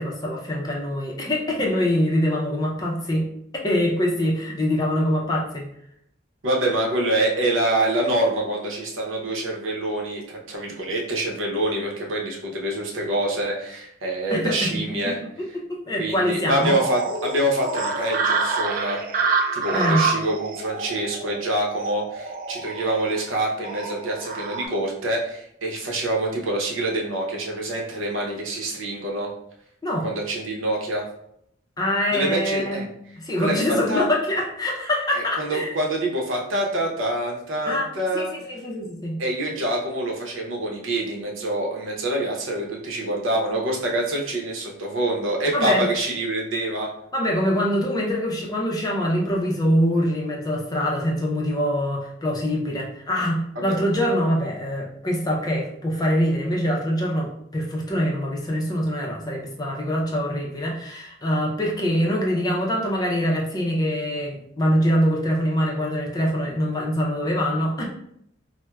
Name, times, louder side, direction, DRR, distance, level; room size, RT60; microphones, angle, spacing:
voice 1, 0.0-3.3 3.6-5.7 14.3-14.8 15.7-16.8 19.3-19.4 19.7-20.1 29.8-30.1 31.8-32.8 33.2-35.7 37.7-37.9 38.1-39.2 45.5-45.8 47.1-67.9, equal, 20° left, -2 dB, 0.5 m, -24 dB
voice 2, 6.4-15.2 16.0-19.0 19.5-29.3 30.0-31.1 32.1-32.9 33.4-34.1 35.1-38.3 39.2-46.9 53.6-53.8, right 1 dB, 80° right, -1 dB, 0.8 m, -26 dB
sound 1, 16.5-24.7, right 4 dB, 45° right, 0.3 m, -27 dB
4.2 x 2.1 x 2.3 m, 0.73 s
head